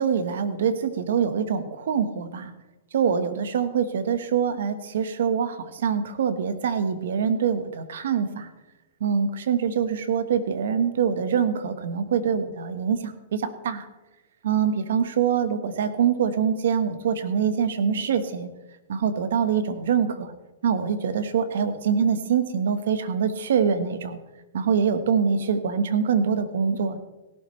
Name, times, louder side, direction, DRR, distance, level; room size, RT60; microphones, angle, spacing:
voice 1, 0.0-2.5 2.9-8.5 9.0-13.9 14.4-18.5 18.9-20.3 20.6-24.2 24.5-27.0, right 7 dB, 75° right, 10 dB, 1.3 m, -24 dB
17.5 x 12.0 x 3.3 m, 1.1 s
hypercardioid pair, 130°, 0 cm